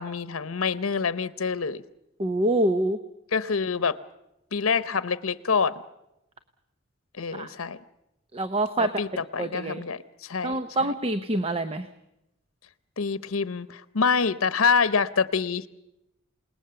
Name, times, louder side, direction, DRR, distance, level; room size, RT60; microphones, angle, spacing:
voice 1, 0.0-1.8 3.3-4.0 4.5-5.8 7.2-7.8 8.8-9.1 9.3-10.6 13.0-15.7, left 5 dB, 85° left, 14 dB, 0.8 m, -26 dB
voice 2, 2.2-3.0 7.3-7.5 8.3-8.9 9.4-9.8 10.4-11.9, right 1 dB, 30° right, 10 dB, 0.8 m, -26 dB
28.5 x 19.0 x 6.9 m, 0.88 s
head